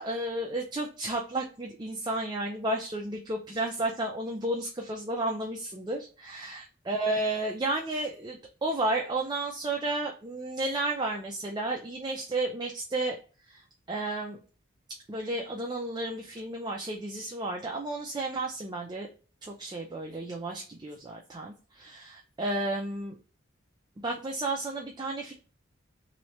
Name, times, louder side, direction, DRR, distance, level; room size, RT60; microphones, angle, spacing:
voice 1, 0.0-13.2 13.5-14.4 15.1-19.1 19.4-23.1 24.0-25.3, right 2 dB, 20° right, 1 dB, 0.4 m, -32 dB
3.1 x 3.1 x 2.9 m, 0.37 s
head